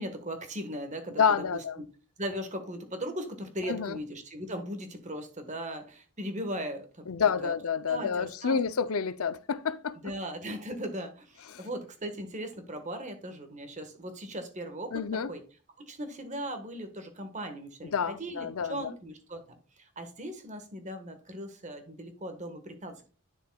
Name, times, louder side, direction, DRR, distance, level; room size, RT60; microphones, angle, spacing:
voice 1, 0.0-1.6 2.2-7.0 7.4-7.5 7.9-8.6 10.0-15.4 15.8-23.1, equal, 30° right, 1.4 m, -38 dB
voice 2, 1.2-1.8 3.7-4.0 7.1-10.0 11.5-11.6 14.9-15.3 17.9-18.9, left 6 dB, 70° left, 0.6 m, -29 dB
10.0 x 6.5 x 2.3 m
head